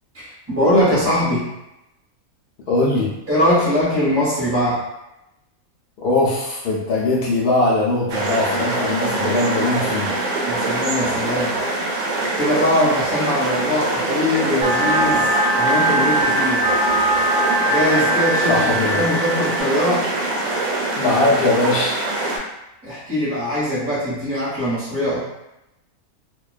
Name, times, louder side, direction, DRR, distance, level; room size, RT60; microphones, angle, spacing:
voice 1, 0.1-1.5 3.3-4.8 10.4-11.6 12.4-16.7 17.7-18.6 18.9-20.1 22.8-25.2, left 1 dB, 10° right, -9 dB, 0.9 m, -21 dB
voice 2, 2.7-3.1 6.0-10.1 18.5-19.0 20.9-22.0, left 2 dB, 75° left, -5 dB, 0.5 m, -20 dB
sound 1, 8.1-22.4, right 2 dB, 70° right, 0.9 m, -24 dB
sound 2, 14.6-19.6, right 1 dB, 35° right, 0.6 m, -21 dB
2.4 x 2.2 x 2.3 m, 0.90 s
omnidirectional pair, 1.5 m